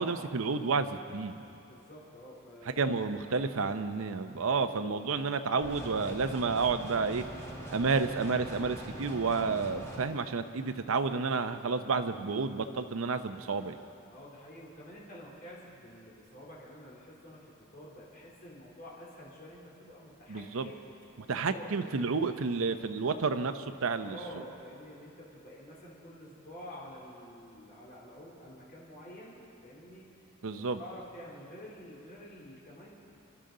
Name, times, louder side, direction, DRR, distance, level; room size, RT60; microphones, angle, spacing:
voice 1, 0.0-1.4 2.8-7.3 7.7-13.8 20.3-20.7 21.3-24.4 30.4-30.8, right 4 dB, 70° right, 9 dB, 0.7 m, -30 dB
voice 2, 1.6-3.8 10.9-11.2 14.1-20.9 21.4-21.7 24.0-30.1 30.6-33.0, equal, 45° left, -5 dB, 3.2 m, -49 dB
sound 1, 5.6-10.0, right 1 dB, 15° left, 2.5 m, -43 dB
24.5 x 12.5 x 3.9 m, 2.6 s
head